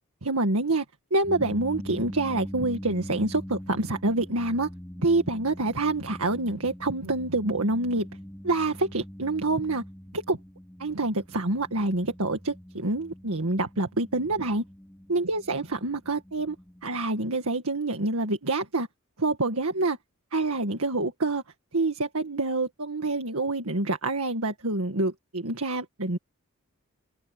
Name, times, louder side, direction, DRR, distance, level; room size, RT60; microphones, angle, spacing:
voice 1, 0.2-0.9 1.1-4.7 5.0-8.1 8.4-9.8 10.1-10.4 10.8-14.6 15.1-16.6 16.8-18.9 19.2-20.0 20.3-21.4 21.7-26.2, right 2 dB, 75° right, 1.9 m, -27 dB
sound 1, 1.3-17.1, equal, 5° left, 3.1 m, -43 dB
open air
head